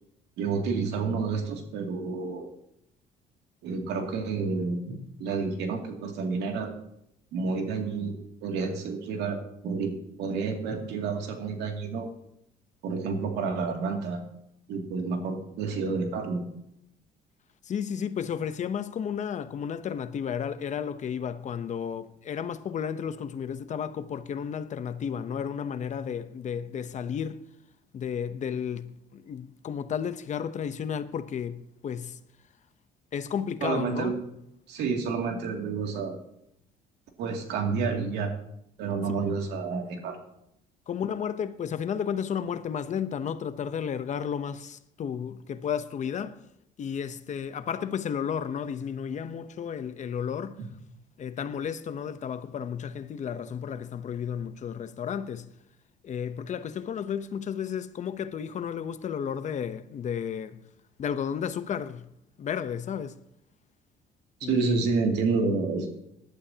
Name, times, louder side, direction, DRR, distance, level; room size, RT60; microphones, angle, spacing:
voice 1, 0.4-2.5 3.6-6.7 7.3-8.1 8.4-9.9 10.2-12.1 12.8-14.2 14.7-16.4 33.6-34.1 34.7-36.2 37.2-38.3 38.8-40.2 64.4-66.0, right 4 dB, 80° right, 2.5 m, -29 dB
voice 2, 17.6-27.4 27.9-32.2 33.1-34.2 40.9-46.4 46.8-50.6 51.2-55.5 56.0-60.6 61.0-62.1 62.4-63.2 64.4-64.9, left 8 dB, 45° left, 0.9 m, -33 dB
19.0 x 11.5 x 2.9 m
cardioid pair, 110°, 17 cm